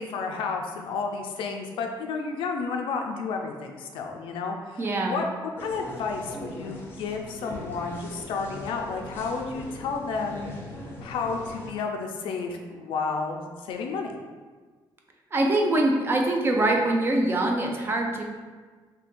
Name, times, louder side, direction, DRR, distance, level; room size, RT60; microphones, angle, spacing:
voice 1, 0.0-10.5 11.0-14.1, left 4 dB, 85° left, 3 dB, 0.4 m, -31 dB
voice 2, 4.8-5.2 15.3-18.2, right 2 dB, 25° right, 1 dB, 0.4 m, -23 dB
sound 1, 5.6-11.7, left 1 dB, 25° left, 0.6 m, -41 dB
2.7 x 2.5 x 3.6 m, 1.4 s
cardioid pair, 135°, 9 cm